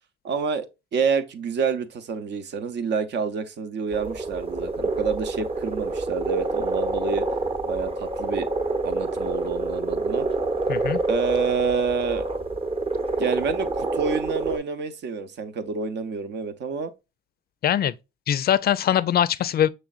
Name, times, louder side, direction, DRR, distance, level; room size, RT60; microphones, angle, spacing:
voice 1, 0.2-0.7 0.9-7.2 7.6-8.5 8.8-10.3 11.1-12.3 13.2-16.9, right 5 dB, 60° right, 0.7 m, -28 dB
sound 1, 3.9-14.6, right 2 dB, 30° right, 0.8 m, -27 dB
voice 2, 10.7-11.0 17.6-17.9 18.3-19.7, left 10 dB, 50° left, 0.4 m, -22 dB
6.2 x 3.2 x 2.3 m
cardioid pair, 90°, 20 cm